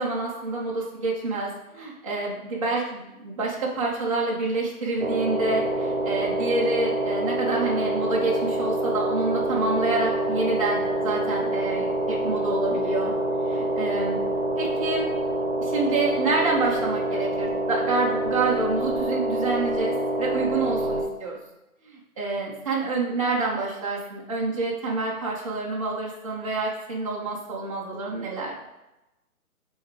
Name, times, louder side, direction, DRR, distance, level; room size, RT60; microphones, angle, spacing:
voice 1, 0.0-13.1 13.4-14.2 14.6-15.1 15.6-21.4 21.8-28.5, right 3 dB, 25° right, -5 dB, 0.8 m, -27 dB
sound 1, 5.0-21.0, right 1 dB, 50° right, 1.0 m, -26 dB
9.0 x 3.6 x 3.2 m, 0.96 s
hypercardioid pair, 165°, 44 cm